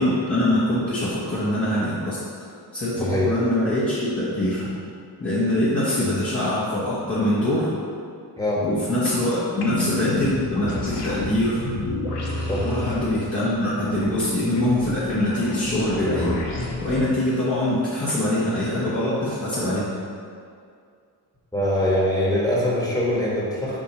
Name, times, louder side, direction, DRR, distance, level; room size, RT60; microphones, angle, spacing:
voice 1, 0.0-2.2 2.7-4.6 5.2-7.7 8.6-11.6 12.6-16.3 16.8-19.9, left 1 dB, 30° left, -10 dB, 1.3 m, -23 dB
voice 2, 3.0-3.3 6.0-6.1 8.4-8.6 12.5-12.6 21.5-23.8, left 1 dB, 10° left, -6 dB, 1.5 m, -23 dB
sound 1, 9.6-17.0, left 2 dB, 75° left, 1.1 m, -30 dB
7.4 x 2.8 x 5.5 m, 2.3 s
wide cardioid pair, 125°, 42 cm